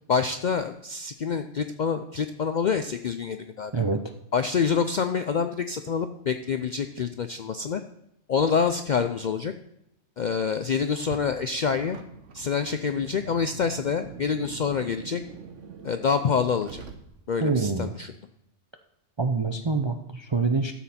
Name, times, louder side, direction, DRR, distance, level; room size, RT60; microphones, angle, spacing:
voice 1, 0.1-3.7 4.3-7.8 8.3-9.5 10.2-12.0 12.3-15.2 15.8-16.8 17.3-18.1, left 6 dB, 60° left, 9 dB, 0.4 m, -26 dB
Car, 10.9-17.5, right 6 dB, 75° right, 1.3 m, -44 dB
voice 2, 17.4-17.9 19.2-20.7, right 4 dB, 40° right, 5 dB, 0.4 m, -25 dB
13.0 x 7.4 x 4.2 m, 0.80 s
omnidirectional pair, 1.3 m